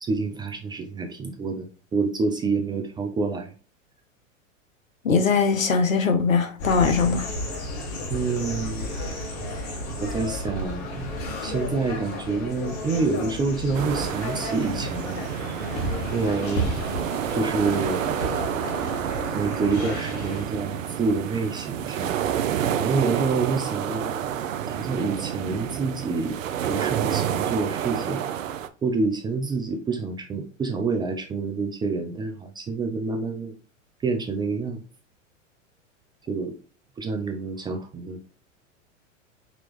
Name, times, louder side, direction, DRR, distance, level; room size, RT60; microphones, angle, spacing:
voice 1, 0.0-3.5 8.1-8.9 10.0-11.1 11.4-15.2 16.1-16.7 17.3-18.1 19.3-22.1 22.8-24.2 24.7-26.4 26.7-28.2 28.8-33.5 34.0-34.8 36.3-36.5 37.0-38.3, right 4 dB, 10° right, 0.3 m, -27 dB
voice 2, 5.0-7.3, left 5 dB, 85° left, 1.0 m, -21 dB
sound 1, 6.6-20.4, equal, 55° left, 2.0 m, -32 dB
sound 2, 13.7-28.7, right 9 dB, 80° right, 0.6 m, -29 dB
5.3 x 3.0 x 3.0 m
hypercardioid pair, 95°, 39 cm